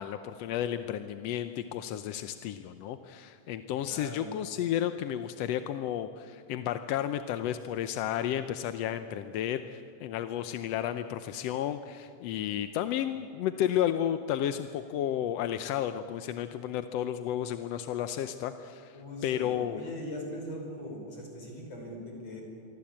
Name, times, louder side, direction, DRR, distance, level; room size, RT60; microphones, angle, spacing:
voice 1, 0.0-19.0 19.2-19.8, left 11 dB, 70° left, 9 dB, 1.6 m, -32 dB
voice 2, 3.9-4.3 18.9-22.4, left 1 dB, 55° left, 1 dB, 6.7 m, -40 dB
26.5 x 23.5 x 8.7 m, 2.8 s
omnidirectional pair, 3.4 m